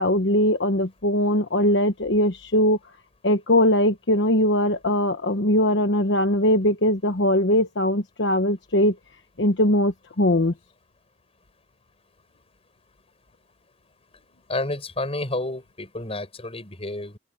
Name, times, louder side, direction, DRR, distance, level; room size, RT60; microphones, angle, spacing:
voice 1, 0.0-2.8 3.2-8.9 9.4-10.5, left 1 dB, 65° left, 1.2 m, -21 dB
voice 2, 14.5-17.2, left 2 dB, 30° left, 6.9 m, -30 dB
open air
head